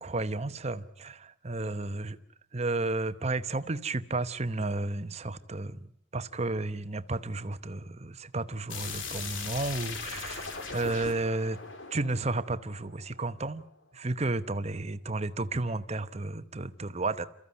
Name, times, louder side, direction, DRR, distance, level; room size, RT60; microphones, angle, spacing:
voice 1, 0.0-2.2 2.5-5.9 6.1-11.6 11.9-13.6 13.9-17.3, right 2 dB, 30° right, 0.9 m, -32 dB
sound 1, 8.7-13.4, left 4 dB, 70° left, 2.8 m, -39 dB
28.0 x 14.5 x 9.6 m
head